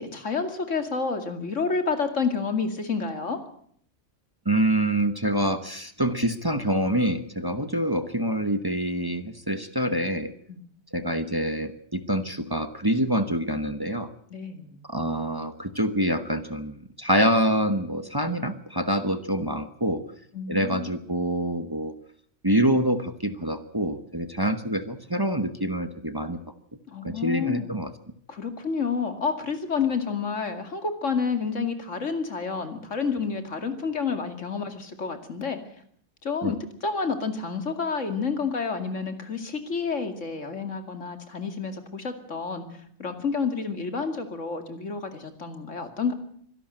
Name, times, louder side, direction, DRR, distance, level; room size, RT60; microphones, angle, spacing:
voice 1, 0.0-3.4 10.5-10.6 14.3-14.8 20.3-20.9 26.9-27.7 28.3-35.6 36.2-42.6 43.0-46.1, left 5 dB, 80° left, 7 dB, 2.7 m, -29 dB
voice 2, 4.4-10.3 10.9-14.1 14.9-20.0 20.5-21.9 22.4-26.4 27.0-27.9 36.4-36.5, right 1 dB, 20° right, 10 dB, 1.2 m, -26 dB
25.0 x 12.0 x 9.0 m, 0.63 s
omnidirectional pair, 1.3 m